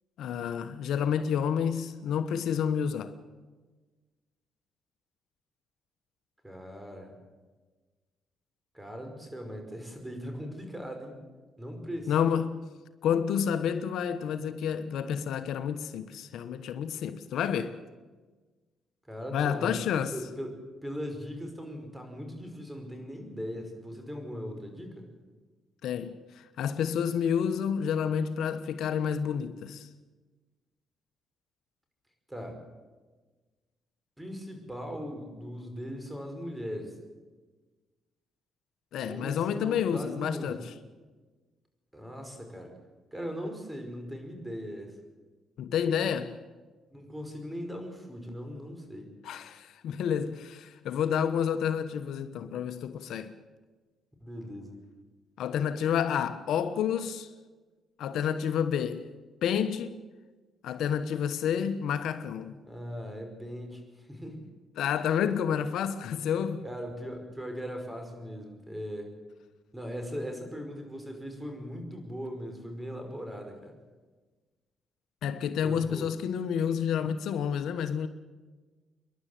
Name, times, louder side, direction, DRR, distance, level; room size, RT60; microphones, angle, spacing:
voice 1, 0.2-3.1 12.1-12.5 13.0-17.8 19.3-20.1 25.8-29.9 38.9-40.7 45.6-46.3 49.2-53.3 55.4-57.3 58.0-59.1 59.4-60.0 60.6-62.6 64.8-66.6 75.2-78.1, left 8 dB, 80° left, 1.1 m, -29 dB
voice 2, 6.4-7.2 8.7-11.2 11.6-12.5 19.1-19.8 20.1-25.1 32.3-32.6 34.2-37.0 39.0-40.6 41.9-42.7 43.1-45.0 46.9-49.1 54.2-54.8 62.6-64.5 66.6-69.1 69.7-73.7 75.6-76.1, equal, 10° right, 5.3 m, -39 dB
28.0 x 11.5 x 9.3 m
cardioid pair, 90°, 0 cm